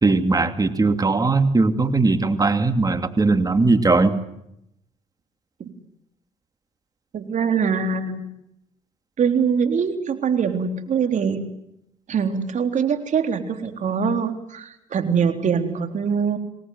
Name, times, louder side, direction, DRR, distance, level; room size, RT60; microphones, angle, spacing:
voice 1, 0.0-4.1, right 3 dB, 25° right, 8 dB, 2.8 m, -19 dB
voice 2, 7.1-8.2 9.2-11.5 12.1-16.4, right 6 dB, 55° right, 6 dB, 3.7 m, -23 dB
25.0 x 19.0 x 9.5 m, 0.81 s
supercardioid pair, 70°, 15 cm